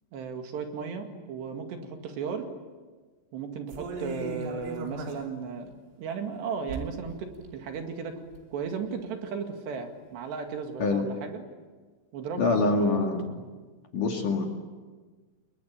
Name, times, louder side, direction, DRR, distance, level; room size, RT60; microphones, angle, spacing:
voice 1, 0.1-2.5 3.3-5.7 6.0-8.1 8.5-11.4 12.1-13.1, right 6 dB, 65° right, 5 dB, 4.1 m, -35 dB
sound 1, 3.7-5.3 5.7-5.8 6.7-7.1 7.4-7.5 8.0-8.6 9.0-9.1, right 2 dB, 85° right, 5.6 m, -38 dB
voice 2, 12.4-13.2 13.9-14.5, left 3 dB, 50° left, 2 dB, 3.3 m, -24 dB
30.0 x 22.5 x 8.8 m, 1.4 s
omnidirectional pair, 5.5 m